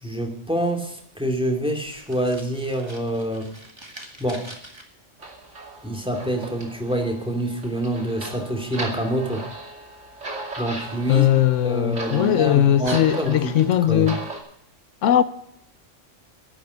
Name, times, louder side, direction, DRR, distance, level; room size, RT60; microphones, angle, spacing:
voice 1, 0.0-3.5 4.2-4.5 5.8-9.4 10.6-11.3 11.6-14.1, right 1 dB, 5° right, 2.4 m, -26 dB
Fire, 1.8-4.8 10.7-12.0 12.5-12.6 12.8-14.0, right 1 dB, 20° right, 1.8 m, -42 dB
sound 1, 5.2-14.4, right 2 dB, 75° right, 2.8 m, -37 dB
voice 2, 11.1-14.2 15.0-15.2, left 11 dB, 85° left, 1.1 m, -19 dB
11.5 x 9.1 x 8.0 m
omnidirectional pair, 1.3 m